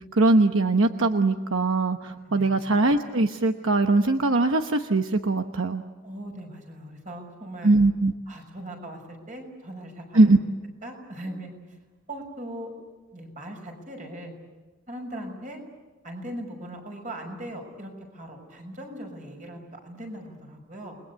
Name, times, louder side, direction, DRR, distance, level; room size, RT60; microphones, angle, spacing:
voice 1, 0.1-5.8 7.6-8.1 10.1-10.4, right 2 dB, 75° right, 6 dB, 1.0 m, -21 dB
voice 2, 2.2-2.6 6.0-7.7 8.3-10.3 10.8-11.8 12.1-12.7 13.1-14.3 14.9-15.6 16.0-21.0, right 1 dB, 35° right, 3 dB, 6.2 m, -39 dB
29.0 x 21.5 x 8.3 m, 1.3 s
head